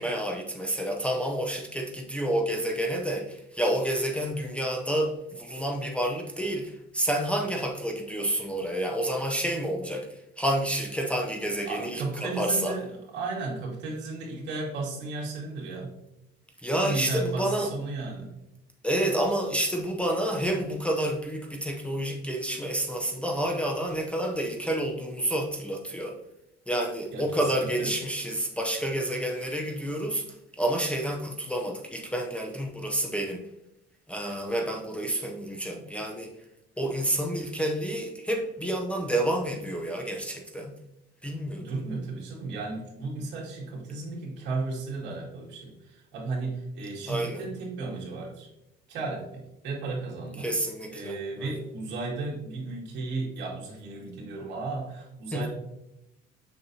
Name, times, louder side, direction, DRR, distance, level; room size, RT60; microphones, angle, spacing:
voice 1, 0.0-12.8 16.6-17.7 18.8-26.2 26.7-30.2 30.6-33.4 34.1-36.3 36.8-40.7 41.2-41.7 47.1-47.4 50.4-51.2 51.4-51.5 55.3-55.5, right 1 dB, 5° left, 1 dB, 0.6 m, -29 dB
voice 2, 11.7-15.9 16.8-18.3 27.1-27.9 41.6-48.5 48.9-50.5 50.9-55.5, right 3 dB, 65° right, -4 dB, 2.3 m, -34 dB
6.7 x 5.8 x 2.7 m, 0.89 s
cardioid pair, 155°, 19 cm